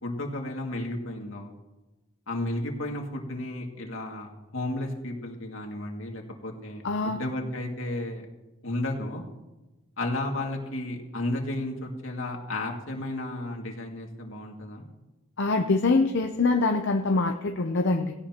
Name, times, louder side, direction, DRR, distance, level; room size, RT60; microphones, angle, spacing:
voice 1, 0.0-1.5 2.3-8.3 8.6-9.2 10.0-14.8, left 1 dB, 80° left, 1 dB, 2.3 m, -33 dB
voice 2, 6.8-7.2 15.4-18.1, left 3 dB, 65° left, 4 dB, 0.7 m, -24 dB
17.0 x 17.0 x 3.0 m, 1.1 s
head